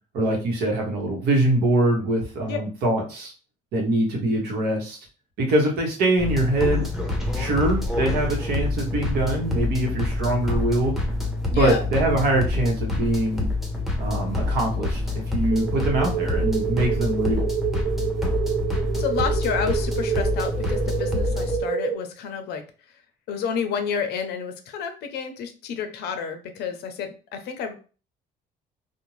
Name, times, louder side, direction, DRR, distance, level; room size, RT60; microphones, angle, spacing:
voice 1, 0.1-3.3 3.7-5.0 5.4-6.9 7.3-11.0 11.5-13.5 14.0-15.0 15.3-17.5, right 1 dB, 70° right, 0 dB, 1.0 m, -23 dB
sound 1, 6.2-21.6, left 2 dB, ahead, 0.8 m, -27 dB
voice 2, 11.5-11.8 19.0-22.6 23.3-27.7, left 6 dB, 75° left, 7 dB, 0.6 m, -29 dB
sound 2, 15.5-21.9, right 9 dB, 50° right, 0.6 m, -28 dB
2.6 x 2.1 x 3.1 m, 0.36 s
cardioid pair, 110°, 17 cm